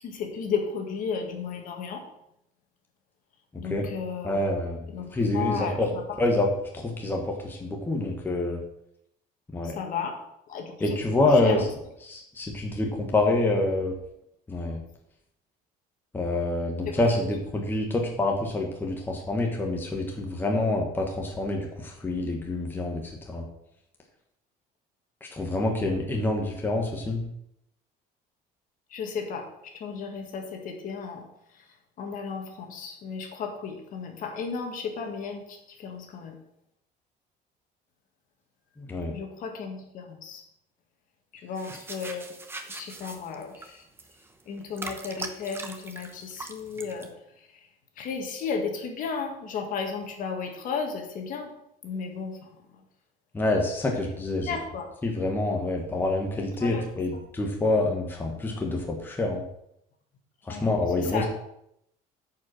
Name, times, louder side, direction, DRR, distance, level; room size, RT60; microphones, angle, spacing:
voice 1, 0.0-2.1 3.6-4.5 4.9-6.2 9.6-10.2 10.5-11.0 11.3-11.6 16.8-17.0 28.9-31.7 32.0-36.4 39.1-40.4 41.3-42.3 42.7-43.9 44.4-47.1 47.3-47.7 48.0-51.5 51.8-52.5 54.0-54.1 54.4-54.9 56.6-56.9 57.1-57.2 60.5-60.7 61.0-61.3, left 5 dB, 50° left, 3 dB, 1.8 m, -34 dB
voice 2, 3.5-3.8 4.2-5.9 6.2-8.6 9.5-9.8 10.8-11.7 12.0-13.9 14.5-14.8 16.1-23.4 25.2-27.2 38.8-39.1 53.3-54.5 55.0-59.4 60.4-61.3, left 2 dB, 10° left, 1 dB, 1.2 m, -27 dB
sound 1, 41.6-47.1, right 3 dB, 15° right, 0.9 m, -41 dB
9.2 x 5.2 x 6.3 m, 0.78 s
cardioid pair, 155°, 17 cm